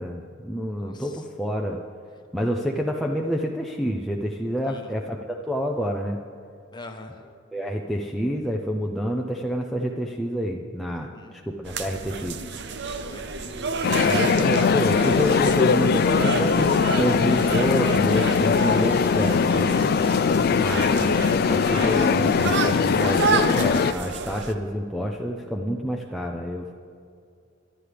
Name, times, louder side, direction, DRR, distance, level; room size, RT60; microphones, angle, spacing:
voice 1, 0.0-1.8 2.3-6.2 7.5-12.4 14.0-19.7 20.5-26.7, equal, ahead, -1 dB, 0.6 m, -28 dB
voice 2, 0.7-1.2 4.7-4.8 6.7-7.2 11.1-11.4 12.9-14.1, left 2 dB, 20° left, 4 dB, 1.1 m, -44 dB
sound 1, 11.7-24.5, right 4 dB, 55° right, 0.7 m, -30 dB
sound 2, 13.8-23.9, left 6 dB, 45° left, 0.3 m, -21 dB
23.5 x 11.0 x 3.4 m, 2.4 s
head